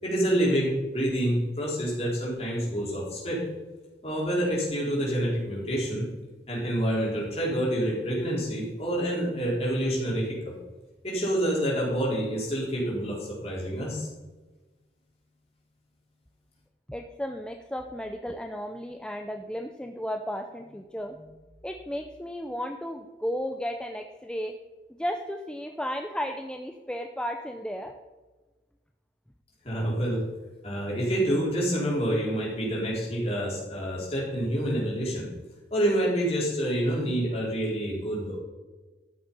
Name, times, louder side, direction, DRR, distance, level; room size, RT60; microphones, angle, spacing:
voice 1, 0.0-3.4 4.0-6.1 6.5-10.5 11.0-14.1 29.6-30.2 30.6-35.3 35.7-38.4, right 1 dB, 35° left, -4 dB, 4.0 m, -27 dB
voice 2, 16.9-21.4 21.6-24.5 25.0-27.9, equal, 5° left, 4 dB, 0.5 m, -34 dB
13.5 x 6.9 x 5.5 m, 1.2 s
head